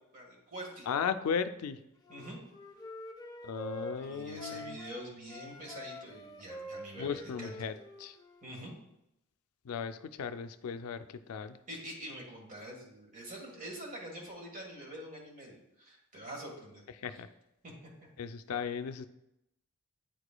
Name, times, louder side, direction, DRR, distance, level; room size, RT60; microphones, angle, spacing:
voice 1, 0.1-0.9 2.1-2.4 4.0-7.6 8.4-8.7 11.7-16.8 17.1-17.2 17.6-17.7, right 1 dB, 40° right, -1 dB, 1.5 m, -45 dB
voice 2, 0.9-1.8 3.4-4.8 7.0-8.2 9.6-11.6 17.0-17.3 18.2-19.1, left 6 dB, 85° left, 10 dB, 0.4 m, -36 dB
Wind instrument woodwind instrument, 2.1-5.0 5.3-8.6, left 1 dB, 20° left, 0.5 m, -46 dB
9.0 x 4.9 x 2.2 m, 0.85 s
head